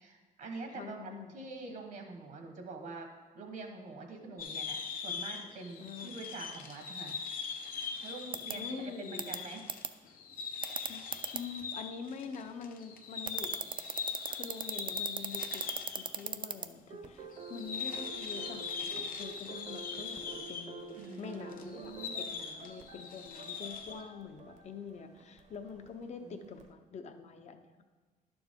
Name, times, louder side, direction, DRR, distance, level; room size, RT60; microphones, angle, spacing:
voice 1, 0.0-3.1 3.3-7.2 8.0-9.6 21.0-21.5 21.7-22.3 26.2-26.6, right 3 dB, 65° right, 4 dB, 1.2 m, -45 dB
voice 2, 0.7-1.5 5.8-6.2 8.5-9.4 10.9-13.6 14.3-15.6 16.0-27.9, left 6 dB, 50° left, 7 dB, 0.7 m, -45 dB
sound 1, 4.4-16.3 16.5-16.6 17.3-24.0, left 6 dB, 75° left, 0.9 m, -41 dB
sound 2, 8.3-8.5 9.2-9.4 9.7-9.9 10.6-11.4 13.3-16.7, right 7 dB, 35° right, 0.4 m, -35 dB
sound 3, 16.9-26.7, right 4 dB, 50° right, 0.8 m, -49 dB
11.0 x 7.0 x 3.6 m, 1.4 s
wide cardioid pair, 170°, 15 cm